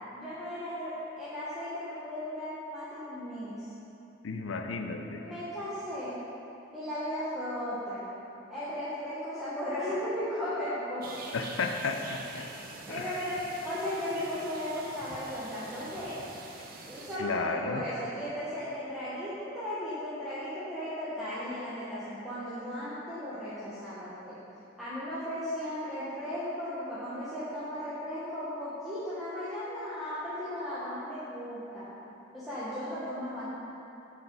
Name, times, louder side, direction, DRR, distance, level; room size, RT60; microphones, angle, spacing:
voice 1, 0.1-3.7 5.0-6.2 6.7-8.1 8.5-11.2 12.9-16.1 16.9-24.4 24.8-31.9 32.3-33.5, equal, ahead, -13 dB, 1.1 m, -36 dB
voice 2, 4.2-5.2 11.3-12.5 12.9-13.1 17.2-17.9, left 4 dB, 75° left, 5 dB, 0.5 m, -33 dB
sound 1, 11.0-17.2, right 3 dB, 45° right, 0.6 m, -45 dB
7.4 x 4.8 x 5.2 m, 2.9 s
head